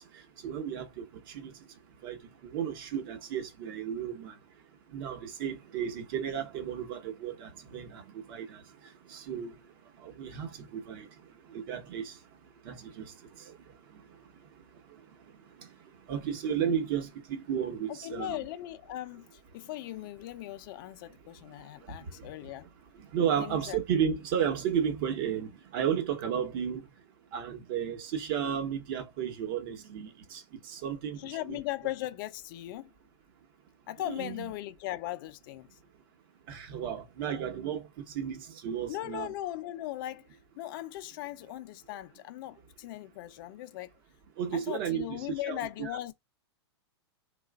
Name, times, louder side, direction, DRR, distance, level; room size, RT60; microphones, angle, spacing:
voice 1, 0.4-1.5 2.0-4.3 4.9-8.0 8.3-8.6 9.1-9.5 10.0-11.1 11.5-12.1 12.6-13.1 13.9-14.0 16.1-18.4 21.9-22.0 23.1-26.9 27.3-30.4 30.7-31.6 34.1-34.5 36.5-37.9 38.1-39.3 44.4-45.9, right 8 dB, 55° right, 1.0 m, -33 dB
voice 2, 17.9-22.7 23.4-23.8 31.2-32.9 33.9-35.8 38.9-43.9 44.5-46.1, left 15 dB, 50° left, 0.4 m, -38 dB
3.1 x 2.3 x 2.3 m
hypercardioid pair, 110°, 14 cm